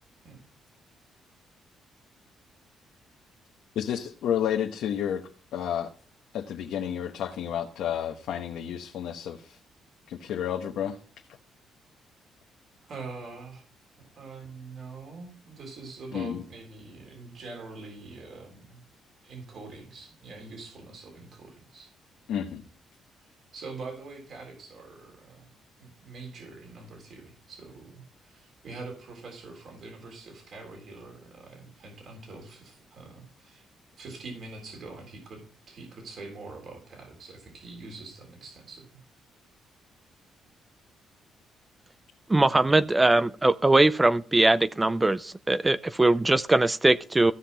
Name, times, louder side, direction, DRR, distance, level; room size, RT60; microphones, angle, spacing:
voice 1, 3.8-5.9 6.3-9.6 10.1-11.0 16.1-16.4 22.3-22.6, left 9 dB, 80° left, 1.0 m, -31 dB
voice 2, 12.9-13.6 14.0-18.8 19.2-21.9 23.2-25.5 25.8-33.7 34.0-39.0, right 3 dB, 55° right, 3.7 m, -44 dB
voice 3, 42.3-47.3, right 2 dB, 15° right, 0.5 m, -21 dB
15.0 x 5.8 x 4.1 m
cardioid pair, 90°, 0 cm